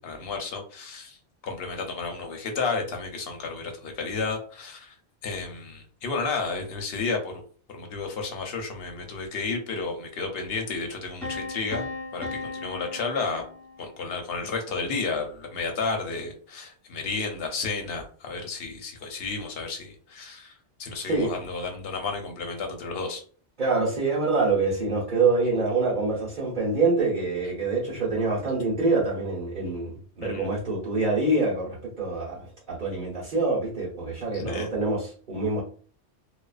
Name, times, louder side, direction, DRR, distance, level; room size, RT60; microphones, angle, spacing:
voice 1, 0.0-1.2 1.4-4.9 5.2-7.4 7.7-11.8 12.1-13.4 13.8-20.5 20.8-23.2 30.2-30.5 34.3-34.7, left 4 dB, 65° left, 3 dB, 0.8 m, -32 dB
Piano, 11.2-14.1, left 3 dB, 5° left, 1.1 m, -37 dB
voice 2, 23.6-35.6, right 3 dB, 45° right, -6 dB, 1.1 m, -25 dB
2.3 x 2.3 x 2.3 m, 0.43 s
omnidirectional pair, 1.2 m